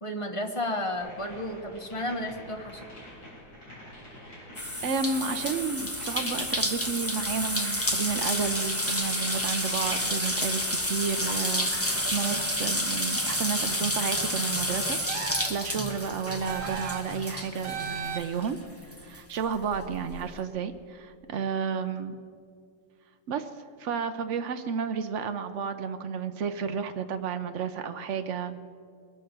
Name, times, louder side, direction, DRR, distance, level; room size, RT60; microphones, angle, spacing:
voice 1, 0.0-2.9, left 1 dB, 30° left, 4 dB, 0.6 m, -32 dB
sound 1, 1.0-13.0, left 1 dB, 55° left, 4.4 m, -47 dB
sound 2, 4.5-18.6 18.9-20.1, equal, 10° left, 1.1 m, -30 dB
voice 2, 4.8-11.7 12.1-15.0 15.5-18.6 19.0-22.1 23.3-23.5 23.8-28.5, right 6 dB, 80° right, 8 dB, 0.6 m, -31 dB
sound 3, 15.0-15.7 16.5-17.2 17.6-18.5, right 7 dB, 50° right, 1.0 m, -36 dB
22.0 x 7.6 x 6.6 m, 2.2 s
omnidirectional pair, 2.1 m